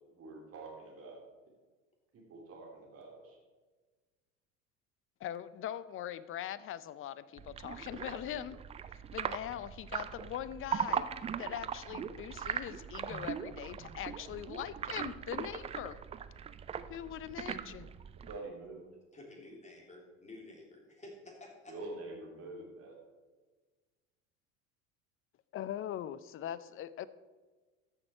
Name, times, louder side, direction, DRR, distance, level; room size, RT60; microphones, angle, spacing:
voice 1, 0.1-1.2 2.1-3.4 18.3-18.8 21.7-22.9, right 2 dB, 35° right, -2 dB, 2.8 m, -46 dB
voice 2, 5.2-8.6 9.1-11.1 11.4-16.0 16.9-17.9 25.5-27.1, left 11 dB, 35° left, 16 dB, 0.5 m, -41 dB
sound 1, 7.4-18.4, right 8 dB, 15° right, 0.3 m, -40 dB
voice 3, 19.1-21.7, left 2 dB, 15° left, -1 dB, 3.2 m, -51 dB
14.0 x 6.3 x 4.5 m, 1.3 s
hypercardioid pair, 75°, 40 cm